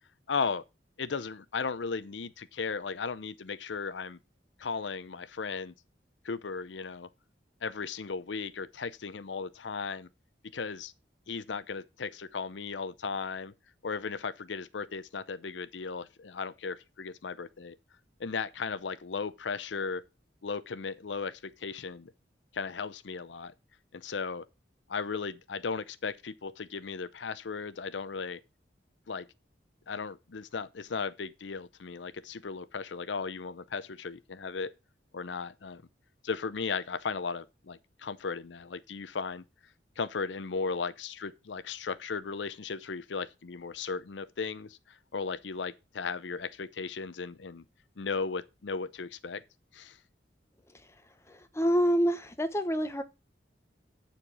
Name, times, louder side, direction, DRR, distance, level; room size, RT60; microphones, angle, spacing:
voice 1, 0.3-0.6 1.0-4.2 4.6-5.7 6.2-7.1 7.6-10.1 10.5-10.9 11.3-13.5 13.8-17.8 18.2-20.0 20.4-22.1 22.5-23.5 23.9-24.4 24.9-28.4 29.1-29.3 29.9-34.7 35.1-35.8 36.2-39.4 40.0-47.6 48.0-49.4 49.7-50.0, left 5 dB, 85° left, 0.6 m, -36 dB
voice 2, 51.3-53.0, equal, 15° left, 0.8 m, -27 dB
9.9 x 4.5 x 6.0 m
head